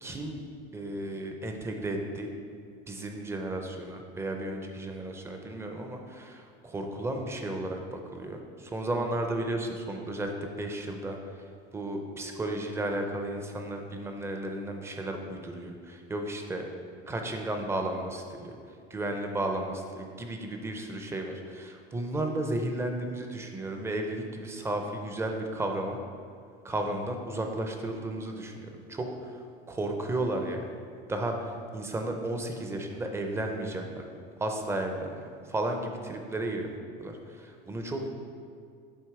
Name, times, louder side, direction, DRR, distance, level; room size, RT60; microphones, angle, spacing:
voice 1, 0.0-0.4 0.7-2.3 2.9-11.4 11.7-16.7 17.1-18.6 18.9-26.0 26.6-30.6 31.1-34.1 34.4-36.7 37.0-38.1, right 1 dB, 10° right, 3 dB, 0.5 m, -34 dB
7.7 x 3.5 x 4.7 m, 2.4 s
cardioid pair, 160°, 21 cm